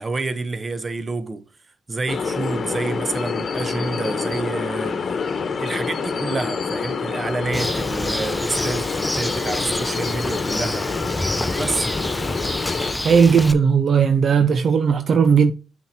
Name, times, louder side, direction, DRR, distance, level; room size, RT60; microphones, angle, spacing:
voice 1, 0.0-1.4 1.9-5.2 5.6-11.0 11.5-11.9, right 3 dB, 30° right, 1.0 m, -28 dB
sound 1, 2.1-12.9, left 5 dB, 50° left, 1.1 m, -27 dB
Bird, 7.5-13.5, left 1 dB, 10° left, 0.5 m, -27 dB
voice 2, 13.0-15.5, right 6 dB, 55° right, 0.6 m, -16 dB
7.0 x 4.6 x 4.2 m
cardioid pair, 85°, 0 cm